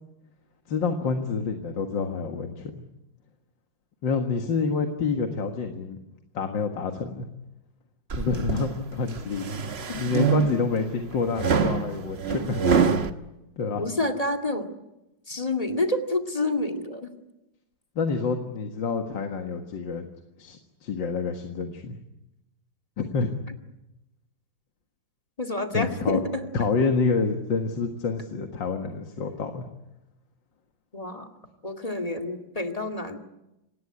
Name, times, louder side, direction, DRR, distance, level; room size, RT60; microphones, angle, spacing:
voice 1, 0.7-2.8 4.0-6.0 6.3-7.3 8.2-9.6 10.0-12.6 13.6-13.9 18.0-20.1 20.4-22.0 23.0-23.3 25.7-26.2 26.5-29.7, left 4 dB, 70° left, 5 dB, 2.3 m, -28 dB
sound 1, 8.1-8.7 9.2-10.8 11.4-13.1, right 6 dB, 35° right, 1.3 m, -25 dB
voice 2, 9.9-10.3 13.8-14.7 15.3-17.1 25.4-26.5 30.9-31.3 31.6-33.2, left 2 dB, 20° left, 5 dB, 2.1 m, -28 dB
26.0 x 19.0 x 9.7 m, 0.94 s
omnidirectional pair, 2.1 m